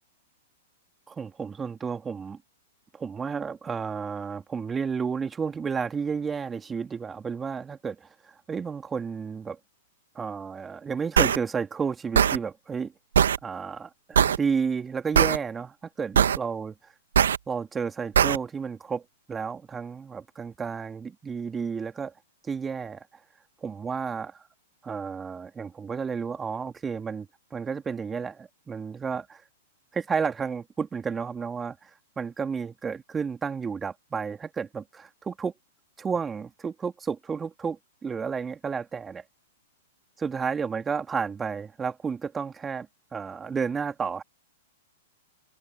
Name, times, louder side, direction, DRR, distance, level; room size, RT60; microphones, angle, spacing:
voice 1, 1.1-2.4 2.9-9.6 10.1-12.9 13.4-16.9 17.5-22.1 22.4-23.1 23.6-24.4 24.8-29.4 29.9-35.5 36.0-39.2 40.2-44.2, right 6 dB, 15° right, 3.1 m, -32 dB
sound 1, 11.2-11.4 12.1-12.4 13.1-13.4 14.1-14.4 15.1-15.4 16.2-16.4 17.2-17.4 18.2-18.4, right 8 dB, 70° right, 1.3 m, -19 dB
figure-of-eight pair, 105°, 0 cm